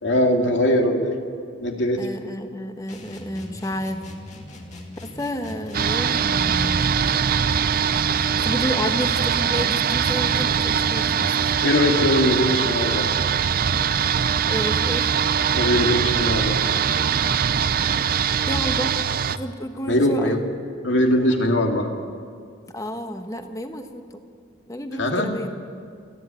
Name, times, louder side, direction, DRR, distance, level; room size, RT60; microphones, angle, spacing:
voice 1, 0.0-1.2 1.6-2.1 11.6-13.1 15.5-16.6 19.9-20.4 20.8-21.9 25.0-25.3, left 1 dB, 70° left, 2 dB, 2.3 m, -21 dB
voice 2, 2.0-4.0 5.2-6.9 8.4-11.3 14.5-15.1 18.5-20.4 22.7-24.2 24.7-25.5, equal, 15° left, 6 dB, 1.2 m, -30 dB
sound 1, 2.9-11.4, left 1 dB, 40° left, 2.4 m, -40 dB
sound 2, 5.7-19.4, right 7 dB, 50° right, 0.5 m, -22 dB
29.0 x 10.5 x 9.0 m, 2.2 s
head